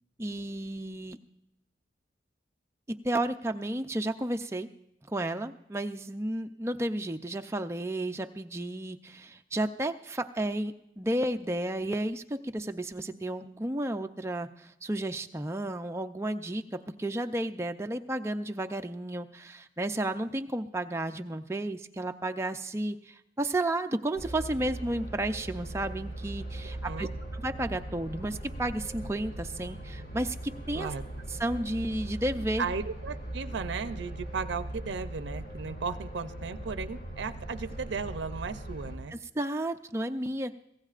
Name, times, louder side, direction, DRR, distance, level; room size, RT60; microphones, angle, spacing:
voice 1, 0.2-1.2 2.9-4.7 5.1-30.9 31.3-32.7 39.1-40.5, right 1 dB, 15° right, 6 dB, 0.4 m, -32 dB
sound 1, 24.2-39.0, right 1 dB, 60° left, 2.1 m, -40 dB
voice 2, 26.6-27.1 30.8-31.0 32.6-39.2, right 5 dB, 75° right, 12 dB, 0.5 m, -35 dB
24.0 x 16.5 x 2.5 m, 0.85 s
head